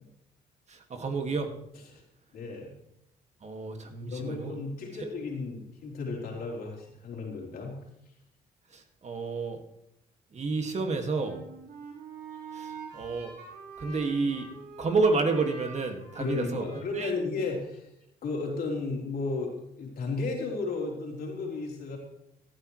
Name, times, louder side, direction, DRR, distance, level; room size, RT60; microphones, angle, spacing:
voice 1, 0.7-1.5 3.4-4.6 8.7-9.6 10.3-11.4 12.5-13.3 13.8-14.5 14.8-16.7 16.9-17.1, right 3 dB, 45° right, 4 dB, 2.0 m, -30 dB
voice 2, 2.3-2.7 4.0-7.7 16.2-17.9 18.2-19.5 19.8-22.0, left 3 dB, 65° left, -1 dB, 3.8 m, -34 dB
sound 1, 11.2-16.8, right 4 dB, 70° right, 3.4 m, -45 dB
16.5 x 10.5 x 3.2 m, 0.82 s
supercardioid pair, 75°, 17 cm